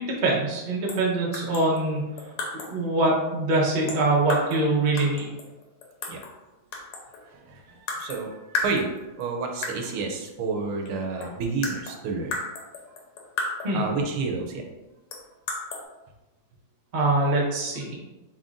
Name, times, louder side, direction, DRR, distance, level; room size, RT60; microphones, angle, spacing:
voice 1, 0.0-2.1 2.7-5.3 13.6-13.8 16.9-17.9, right 2 dB, 40° right, -3 dB, 0.6 m, -23 dB
sound 1, 0.9-1.1 1.3-2.8 3.9-4.7 5.0-6.4 6.7-7.3 7.9-8.2 8.5-9.2 9.6-10.0 10.9-11.0 11.2-13.9 15.1-15.8, left 3 dB, 85° left, 1.8 m, -34 dB
voice 2, 7.2-12.3 13.7-14.7, right 4 dB, 80° right, 2 dB, 1.6 m, -30 dB
7.1 x 2.9 x 2.5 m, 1.1 s
omnidirectional pair, 2.4 m